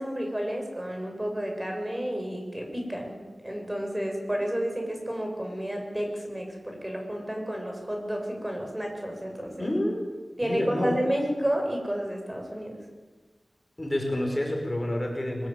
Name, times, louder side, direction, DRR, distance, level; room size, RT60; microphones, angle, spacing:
voice 1, 0.0-3.2 3.4-9.7 10.4-12.8, equal, 15° right, 2 dB, 7.3 m, -31 dB
voice 2, 9.6-10.1 10.4-11.0 13.8-15.5, left 1 dB, 25° left, 1 dB, 5.9 m, -28 dB
23.0 x 21.0 x 9.3 m, 1.3 s
wide cardioid pair, 70°, 0 cm